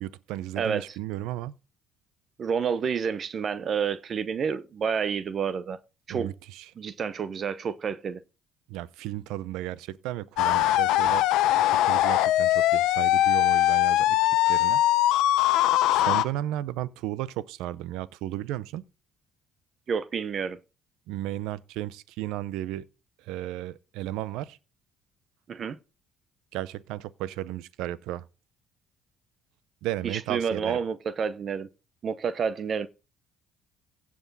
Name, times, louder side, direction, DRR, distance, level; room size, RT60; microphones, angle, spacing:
voice 1, 0.0-1.5 6.1-6.7 8.7-11.3 11.6-14.8 15.9-18.8 21.1-22.9 23.2-24.6 26.5-28.2 29.8-30.8, right 14 dB, 80° right, 0.6 m, -34 dB
voice 2, 0.6-1.0 2.4-5.8 6.1-6.3 6.8-8.2 19.9-20.6 25.5-25.8 30.0-31.7 32.0-32.9, right 6 dB, 50° right, 0.8 m, -29 dB
sound 1, 10.4-16.2, left 14 dB, 80° left, 0.7 m, -21 dB
16.0 x 6.2 x 4.1 m
supercardioid pair, 80°, 0 cm